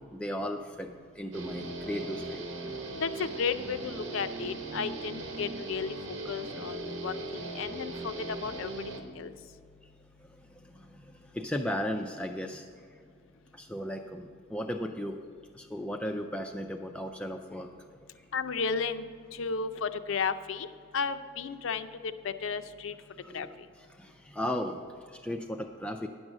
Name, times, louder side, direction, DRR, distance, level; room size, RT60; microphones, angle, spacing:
voice 1, 0.1-2.4 11.3-12.6 13.5-15.2 15.6-17.7 23.2-23.5 24.0-24.8 25.2-26.1, equal, 5° left, 4 dB, 0.3 m, -35 dB
Guitar, 1.3-9.0, right 2 dB, 75° right, 1.2 m, -39 dB
voice 2, 3.0-8.7 9.0-9.3 18.3-19.1 19.3-20.7 20.9-22.9 23.3-23.5, left 5 dB, 75° left, 11 dB, 0.5 m, -34 dB
10.0 x 6.2 x 6.3 m, 2.3 s
head